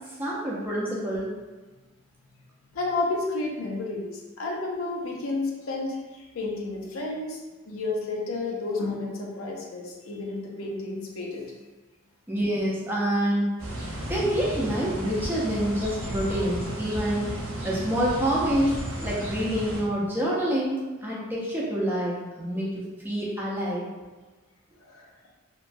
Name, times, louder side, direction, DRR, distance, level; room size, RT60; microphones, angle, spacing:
voice 1, 0.2-1.3 12.3-13.5 14.1-17.4 17.6-23.8, equal, 10° right, -6 dB, 0.5 m, -27 dB
voice 2, 2.7-11.5 24.8-25.1, left 3 dB, 75° left, -1 dB, 0.5 m, -31 dB
sound 1, 13.6-19.8, right 1 dB, 80° right, 0.8 m, -34 dB
3.0 x 2.2 x 2.5 m, 1.3 s
head